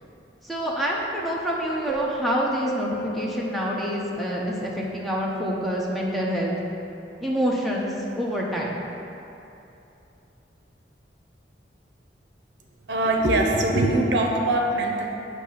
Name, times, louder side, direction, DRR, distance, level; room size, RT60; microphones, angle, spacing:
voice 1, 0.4-6.5 7.2-8.8, equal, ahead, -4 dB, 0.7 m, -27 dB
Keyboard (musical), 1.9-4.6, right 1 dB, 80° left, 1.1 m, -34 dB
voice 2, 12.9-15.1, right 1 dB, 70° right, 1 dB, 0.6 m, -22 dB
7.9 x 2.8 x 5.6 m, 2.8 s
head